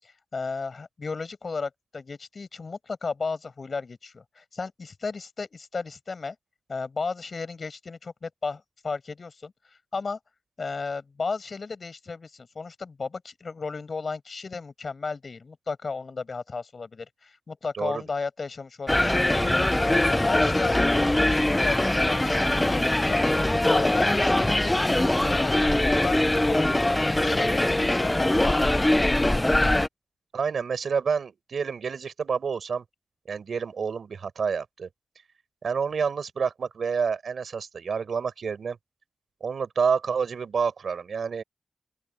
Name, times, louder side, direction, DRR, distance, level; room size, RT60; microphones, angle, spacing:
voice 1, 0.3-6.4 6.7-9.5 9.9-10.2 10.6-23.2 23.6-29.2, left 4 dB, 50° left, 6.3 m, -34 dB
voice 2, 17.7-18.0 30.3-32.8 33.3-34.9 35.6-38.8 39.4-41.4, right 6 dB, 85° right, 5.3 m, -28 dB
sound 1, 18.9-29.9, left 1 dB, 15° left, 0.7 m, -22 dB
open air
wide cardioid pair, 120°, 0 cm